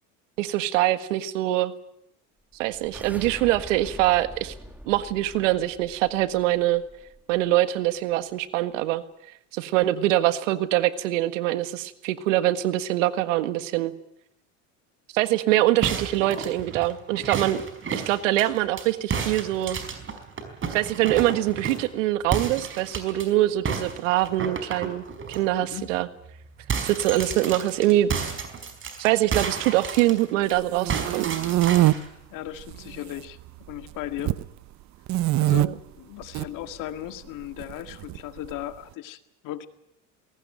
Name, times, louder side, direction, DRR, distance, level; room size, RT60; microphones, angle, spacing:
voice 1, 0.4-1.7 2.6-4.5 4.9-6.8 7.3-9.0 9.5-13.9 15.1-17.6 17.9-19.8 20.7-26.1 26.8-28.1 29.0-31.3 35.6-35.7, right 15 dB, 80° right, 12 dB, 1.7 m, -24 dB
sound 1, 2.5-7.6, right 1 dB, 5° right, 2.6 m, -44 dB
sound 2, 15.8-18.8 19.1-21.9 22.3-23.3 23.7-25.4 25.8-26.0 26.3-30.5 30.9-32.1, right 6 dB, 35° right, 4.8 m, -32 dB
sound 3, 30.5-31.9 32.6-33.2 33.5-34.4 35.1-35.7 36.2-36.5 37.6-38.5, right 16 dB, 50° right, 1.0 m, -23 dB
voice 2, 32.3-33.4 33.7-34.4 35.4-39.7, left 13 dB, 55° left, 9 dB, 2.0 m, -36 dB
21.0 x 18.5 x 8.9 m, 0.77 s
supercardioid pair, 100°, 37 cm